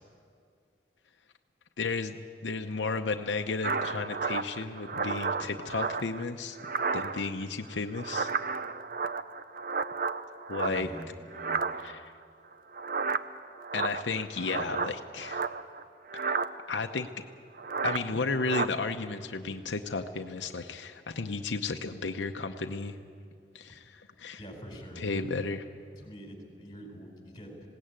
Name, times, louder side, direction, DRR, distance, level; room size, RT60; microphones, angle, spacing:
voice 1, 1.8-2.2 2.4-6.6 6.9-8.3 10.5-10.9 11.8-12.1 13.7-15.5 16.1-16.4 16.7-17.1 17.8-23.0 23.5-24.4 25.0-25.6, left 4 dB, 85° left, 5 dB, 0.8 m, -33 dB
sound 1, 3.6-6.2 6.6-7.4 7.7-11.0 11.3-12.1 12.7-15.8 16.1-16.5 17.6-18.0 18.3-18.7, right 4 dB, 50° right, 0.6 m, -32 dB
voice 2, 10.6-11.7 24.4-25.3 26.0-27.7, equal, 25° left, 2 dB, 4.1 m, -45 dB
21.0 x 17.5 x 9.0 m, 2.3 s
head